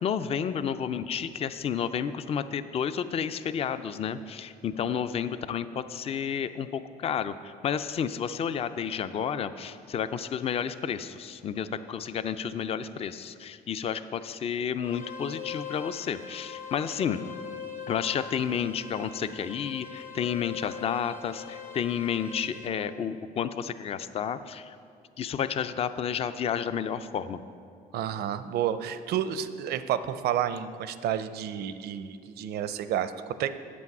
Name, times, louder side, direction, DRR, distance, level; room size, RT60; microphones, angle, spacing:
voice 1, 0.0-17.2 17.9-24.8 25.2-27.4, left 8 dB, 35° left, 12 dB, 0.4 m, -31 dB
sound 1, 14.8-22.7, left 6 dB, 55° left, 1.4 m, -42 dB
voice 2, 27.9-33.6, right 10 dB, 70° right, 12 dB, 0.5 m, -30 dB
8.4 x 7.5 x 6.0 m, 2.3 s
cardioid pair, 110°, 17 cm